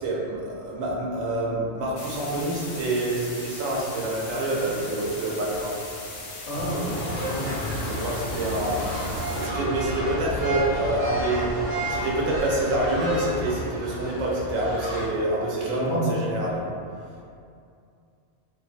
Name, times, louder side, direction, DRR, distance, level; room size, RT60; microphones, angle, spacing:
voice 1, 0.0-5.7 7.8-8.8 9.3-11.5 11.9-16.6, right 2 dB, 80° right, -4 dB, 1.0 m, -27 dB
sound 1, 2.0-9.5, left 2 dB, 65° left, 0.6 m, -39 dB
voice 2, 6.5-7.0 7.2-7.9 8.4-8.5 15.7-16.0, equal, 90° left, -5 dB, 1.1 m, -31 dB
sound 2, 6.5-13.7, right 1 dB, 50° right, 1.0 m, -31 dB
sound 3, 6.9-15.1, left 1 dB, 25° right, 0.6 m, -36 dB
2.9 x 2.1 x 2.4 m, 2.4 s
omnidirectional pair, 1.4 m